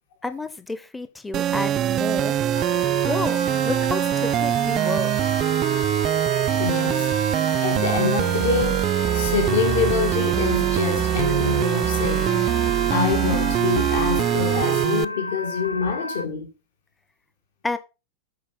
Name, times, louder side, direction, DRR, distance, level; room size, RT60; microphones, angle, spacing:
voice 1, 0.2-2.4 3.0-3.4 3.6-5.1 17.6-17.8, left 2 dB, 10° left, 0.7 m, -30 dB
sound 1, 1.3-15.0, right 12 dB, 30° right, 0.4 m, -23 dB
sound 2, 2.5-16.3, left 3 dB, 85° left, 0.5 m, -33 dB
voice 2, 6.6-12.5 12.9-16.5, left 6 dB, 60° left, 1.8 m, -26 dB
8.7 x 4.7 x 5.3 m
figure-of-eight pair, 90°, 0 cm